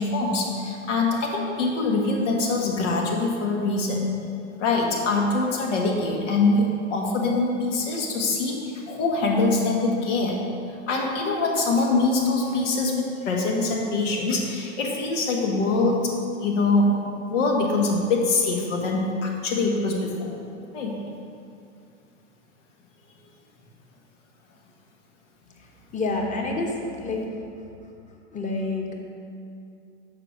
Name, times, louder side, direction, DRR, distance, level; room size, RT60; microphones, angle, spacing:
voice 1, 0.0-4.1 4.5-10.4 10.9-16.1 16.4-20.4 20.7-21.0, left 3 dB, 80° left, -1 dB, 1.6 m, -24 dB
voice 2, 25.9-27.2 28.3-29.0, left 2 dB, 20° left, 0 dB, 1.1 m, -28 dB
6.6 x 4.9 x 6.3 m, 2.5 s
supercardioid pair, 120°, 36 cm